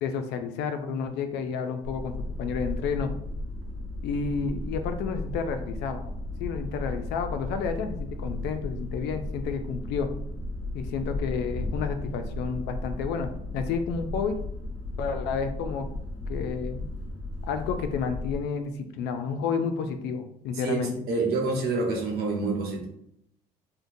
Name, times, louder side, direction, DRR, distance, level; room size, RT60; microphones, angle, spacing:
voice 1, 0.0-3.1 4.0-6.1 6.4-10.1 10.7-14.3 15.0-15.9 16.3-16.9 17.5-20.9, left 6 dB, 85° left, 7 dB, 0.4 m, -31 dB
sound 1, 1.8-18.4, left 2 dB, 25° left, 1.2 m, -35 dB
voice 2, 20.5-22.9, right 3 dB, 70° right, -1 dB, 1.0 m, -27 dB
3.7 x 2.2 x 2.6 m, 0.75 s
cardioid pair, 110°, 17 cm